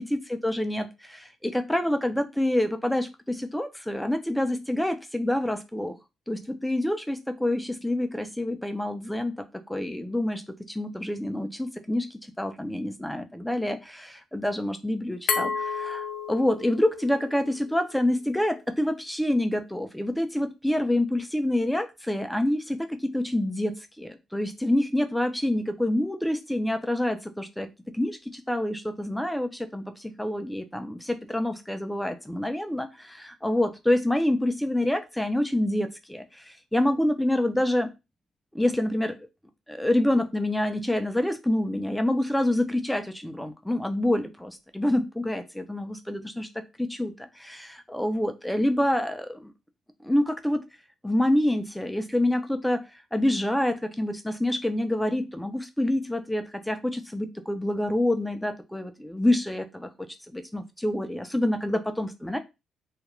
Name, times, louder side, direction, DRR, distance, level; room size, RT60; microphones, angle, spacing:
voice 1, 0.0-5.9 6.3-9.4 9.7-10.4 10.7-37.9 38.6-39.1 39.7-46.5 46.8-49.5 50.0-50.6 51.0-59.9 60.3-62.4, left 1 dB, 5° left, 8 dB, 0.4 m, -27 dB
Glass, 15.3-18.1, left 5 dB, 65° left, 0.5 m, -32 dB
2.3 x 2.1 x 3.0 m, 0.25 s
cardioid pair, 90°, 0 cm